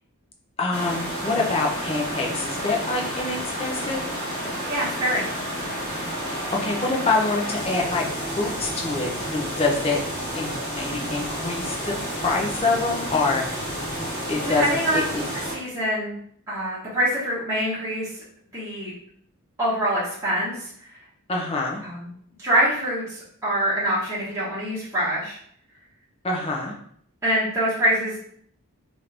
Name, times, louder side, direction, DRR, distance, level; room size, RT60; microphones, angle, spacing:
voice 1, 0.6-4.0 6.5-8.0 8.4-10.0 10.3-11.9 12.2-13.4 14.3-15.2 21.3-21.8 26.2-26.7, left 3 dB, 25° left, 0 dB, 0.5 m, -25 dB
Morphagene Waterfall Reel, 0.7-15.5, equal, 5° left, 1.3 m, -30 dB
voice 2, 4.7-5.3 14.4-15.1 15.5-16.1 16.5-18.2 18.5-18.9 19.6-20.7 21.8-22.1 22.4-25.4 27.2-28.2, right 1 dB, 15° right, -10 dB, 1.0 m, -25 dB
3.0 x 2.5 x 3.2 m, 0.64 s
head